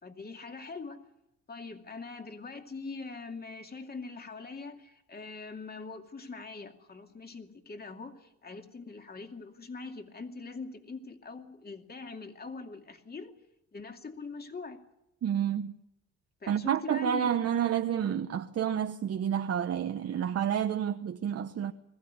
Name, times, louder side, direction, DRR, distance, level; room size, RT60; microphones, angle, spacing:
voice 1, 0.0-1.0 1.5-13.3 13.7-14.8 16.4-17.3, left 4 dB, 30° left, 2.6 m, -43 dB
voice 2, 15.2-15.7 16.5-21.7, right 9 dB, 55° right, 1.0 m, -29 dB
21.0 x 15.0 x 9.5 m
cardioid pair, 90°, 30 cm